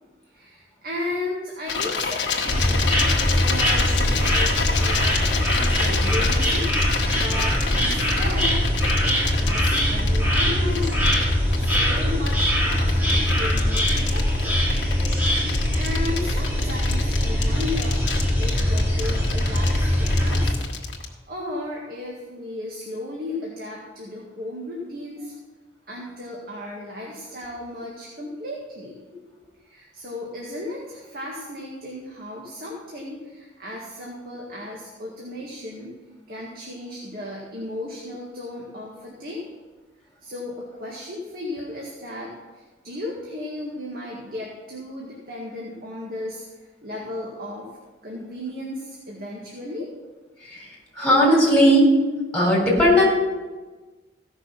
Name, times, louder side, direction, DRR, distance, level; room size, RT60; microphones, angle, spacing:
voice 1, 0.3-6.7 7.1-8.6 9.0-11.3 11.6-14.6 15.4-18.1 18.4-20.6 21.3-25.3 25.9-29.0 29.6-36.0 36.3-39.5 40.2-47.7 48.0-49.9, left 1 dB, 55° right, -3 dB, 1.9 m, -35 dB
sound 1, 1.7-21.1, left 5 dB, 85° left, 1.6 m, -28 dB
sound 2, 2.5-20.5, left 1 dB, 10° right, 2.9 m, -22 dB
voice 2, 51.0-52.0 52.3-53.1, equal, 5° left, -3 dB, 4.1 m, -17 dB
16.0 x 6.3 x 5.9 m, 1.3 s
head